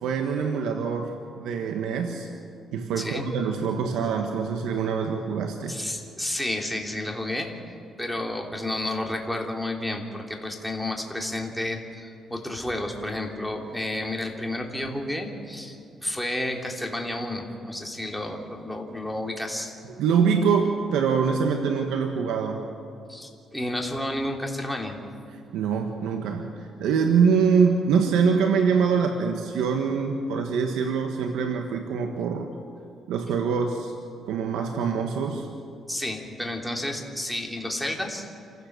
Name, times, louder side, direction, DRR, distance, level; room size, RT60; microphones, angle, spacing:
voice 1, 0.0-2.3 2.7-5.8 20.0-22.6 25.3-32.5 33.1-33.9 34.3-35.5, right 6 dB, 90° right, 4 dB, 1.4 m, -24 dB
voice 2, 3.0-3.3 5.7-7.5 8.0-19.7 23.1-25.0 35.9-38.3, left 1 dB, ahead, 1 dB, 3.1 m, -31 dB
28.0 x 16.0 x 6.8 m, 2.6 s
cardioid pair, 90°, 0 cm